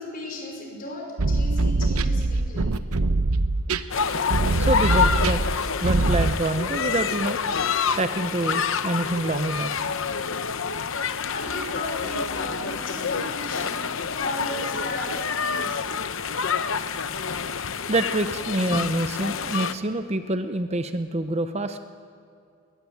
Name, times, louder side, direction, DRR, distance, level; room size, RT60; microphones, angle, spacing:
voice 1, 0.0-2.7 11.3-13.8 14.2-15.8, left 1 dB, 40° left, 0 dB, 5.4 m, -35 dB
sound 1, 1.2-6.3, right 2 dB, 80° right, 0.9 m, -23 dB
sound 2, 3.9-19.7, left 6 dB, 60° left, 0.8 m, -27 dB
voice 2, 4.6-5.4 5.8-7.4 7.9-9.7 17.9-21.8, right 2 dB, 30° right, 9 dB, 0.7 m, -26 dB
21.0 x 18.5 x 9.5 m, 2.5 s
head